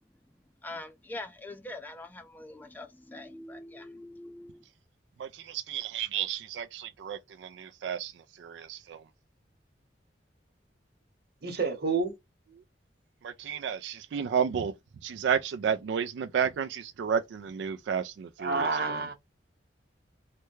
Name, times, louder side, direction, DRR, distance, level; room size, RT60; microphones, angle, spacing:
voice 1, 0.6-4.6, left 2 dB, 10° left, 0.3 m, -43 dB
voice 2, 5.2-9.0 13.2-14.7 15.0-19.0, right 7 dB, 80° right, 0.3 m, -32 dB
voice 3, 11.4-12.1 18.4-19.1, right 4 dB, 60° right, 1.0 m, -28 dB
3.3 x 2.1 x 3.1 m
head